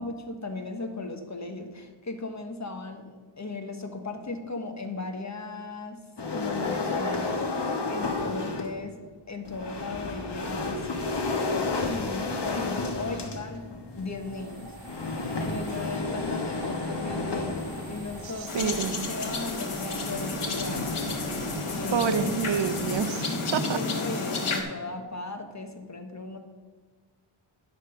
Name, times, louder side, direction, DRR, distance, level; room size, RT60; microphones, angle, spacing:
voice 1, 0.0-6.0 6.3-9.0 9.3-10.9 11.9-13.6 13.9-14.7 15.4-18.7 19.1-21.3 21.6-22.1 23.4-26.4, left 3 dB, 35° left, 6 dB, 1.2 m, -37 dB
sound 1, 6.2-8.8 9.4-18.3, left 3 dB, 55° left, 1.3 m, -31 dB
sound 2, 13.9-22.9, right 2 dB, 45° right, 3.1 m, -44 dB
sound 3, 18.5-24.6, left 3 dB, 85° left, 1.4 m, -31 dB
voice 2, 18.5-19.1 21.9-23.2 23.5-23.8, right 6 dB, 65° right, 11 dB, 0.7 m, -27 dB
10.5 x 6.0 x 5.6 m, 1.5 s
wide cardioid pair, 85°, 50 cm